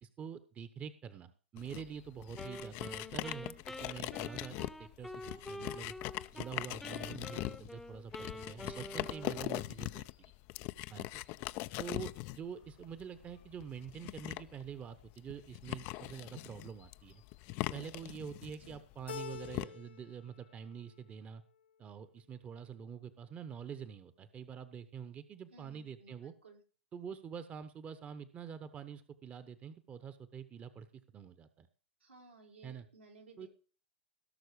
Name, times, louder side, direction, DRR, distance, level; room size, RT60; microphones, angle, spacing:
voice 1, 0.0-5.9 6.3-10.3 10.9-11.2 11.8-17.2 17.7-21.4 21.8-26.3 26.9-30.9 31.1-31.7 32.6-32.9 33.4-33.5, right 7 dB, 25° right, 12 dB, 1.0 m, -46 dB
sound 1, 1.6-19.7, left 19 dB, 40° left, 0.5 m, -42 dB
Wind instrument woodwind instrument, 2.3-6.5 6.8-9.7, left 1 dB, 5° left, 0.9 m, -47 dB
voice 2, 8.6-9.2 18.6-18.8 25.5-26.6 32.0-33.5, right 4 dB, 85° right, 0 dB, 4.3 m, -58 dB
Keyboard (musical), 19.1-20.2 20.5-21.2, left 7 dB, 70° left, 0.9 m, -46 dB
17.0 x 6.4 x 4.9 m, 0.37 s
figure-of-eight pair, 100°, 6 cm